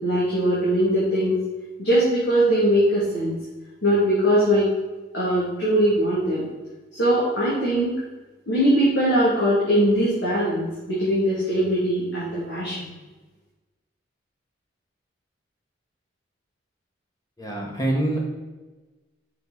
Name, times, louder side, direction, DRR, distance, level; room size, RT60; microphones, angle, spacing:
voice 1, 0.0-1.4 1.8-3.3 3.8-4.7 5.1-6.4 6.9-8.0 8.5-12.9, equal, 60° left, -9 dB, 2.8 m, -21 dB
voice 2, 17.4-18.2, right 1 dB, 20° left, -2 dB, 1.5 m, -25 dB
7.0 x 6.5 x 4.2 m, 1.2 s
head